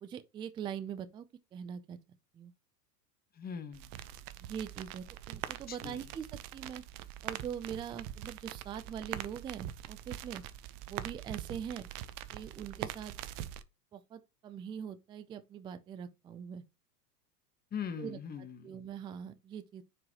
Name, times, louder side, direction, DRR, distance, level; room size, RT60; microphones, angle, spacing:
voice 1, 0.0-1.3 1.5-2.0 2.3-2.5 4.4-6.3 6.5-6.8 7.2-10.4 10.9-11.9 12.3-13.1 13.9-16.6 18.0-18.2 18.6-19.8, right 8 dB, 10° right, 0.4 m, -42 dB
voice 2, 3.3-3.9 5.7-6.1 17.7-18.8, left 7 dB, 20° left, 1.2 m, -41 dB
sound 1, 3.7-13.6, right 12 dB, 45° right, 0.9 m, -43 dB
9.5 x 5.0 x 3.0 m
supercardioid pair, 125°, 47 cm